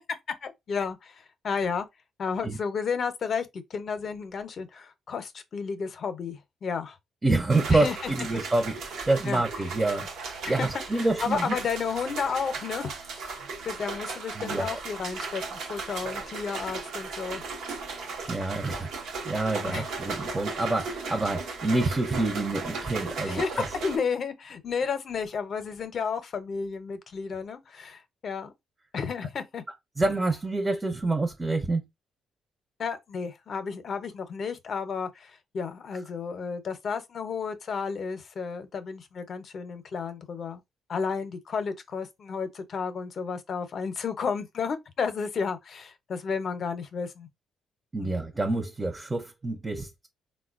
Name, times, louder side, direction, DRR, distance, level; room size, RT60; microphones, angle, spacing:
voice 1, 0.3-1.9 2.2-7.0 7.7-8.1 9.3-9.4 10.4-10.7 11.0-17.4 19.6-19.9 23.2-28.5 28.9-29.6 32.8-40.6 40.9-47.3 48.0-48.1, left 5 dB, 55° left, 0.6 m, -32 dB
voice 2, 7.2-10.1 10.5-11.5 14.4-14.8 18.3-18.9 19.2-23.6 30.0-31.8 47.9-50.1, right 2 dB, 20° right, 0.5 m, -27 dB
sound 1, 7.5-24.0, right 4 dB, 80° right, 0.7 m, -36 dB
3.7 x 2.1 x 2.4 m
cardioid pair, 90°, 0 cm